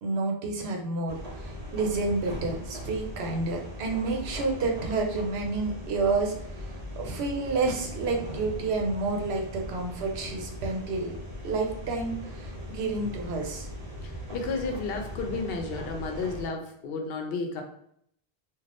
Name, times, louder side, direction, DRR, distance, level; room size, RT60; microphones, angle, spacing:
voice 1, 0.0-11.2 11.4-13.7, right 3 dB, 90° right, 2 dB, 0.9 m, -30 dB
sound 1, 1.1-16.5, left 1 dB, 45° right, 0.6 m, -40 dB
voice 2, 14.0-17.6, left 3 dB, 70° left, 3 dB, 0.8 m, -32 dB
2.5 x 2.4 x 3.3 m, 0.69 s
omnidirectional pair, 1.0 m